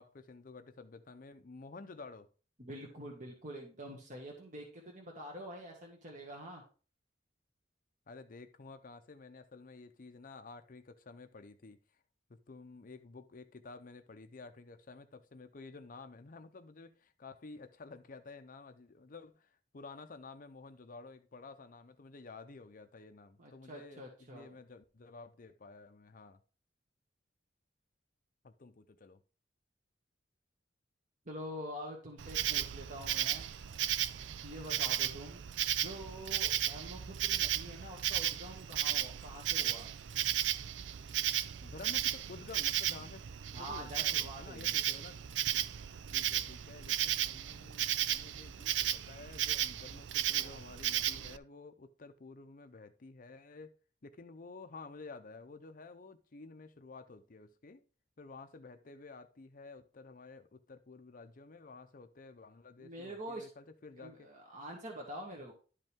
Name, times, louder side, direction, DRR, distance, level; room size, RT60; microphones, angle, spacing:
voice 1, 0.0-2.3 8.1-11.8 12.3-26.4 28.4-29.2 41.6-43.3 43.6-45.2 46.1-53.7 54.0-57.8 58.2-64.3, left 3 dB, 50° left, 0.6 m, -52 dB
voice 2, 2.6-6.6 23.4-24.5 31.3-33.5 34.4-35.4 35.8-39.9 43.5-44.8 62.8-63.5 64.0-65.5, equal, 45° right, 1.8 m, -46 dB
Insect, 32.2-51.4, right 11 dB, 75° right, 0.4 m, -35 dB
11.5 x 5.3 x 3.6 m
head